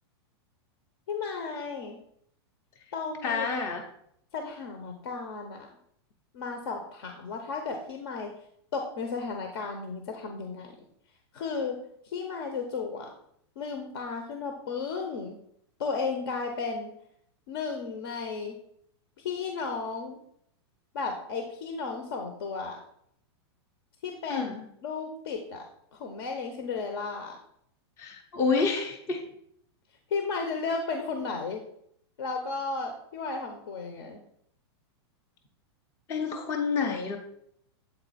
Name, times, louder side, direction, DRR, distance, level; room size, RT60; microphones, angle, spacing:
voice 1, 1.1-2.0 2.9-3.5 4.3-5.7 6.3-8.3 8.7-10.8 11.3-11.8 12.0-13.1 13.6-15.4 15.8-16.9 17.5-18.5 19.2-20.2 20.9-22.8 24.0-24.5 24.8-25.6 25.9-27.4 30.1-31.6 32.2-34.2, left 4 dB, 65° left, 4 dB, 1.0 m, -34 dB
voice 2, 3.2-3.8 24.3-24.7 28.0-29.2 36.1-37.2, left 5 dB, 20° left, 2 dB, 0.6 m, -28 dB
8.1 x 3.9 x 4.1 m, 0.71 s
supercardioid pair, 170°, 14 cm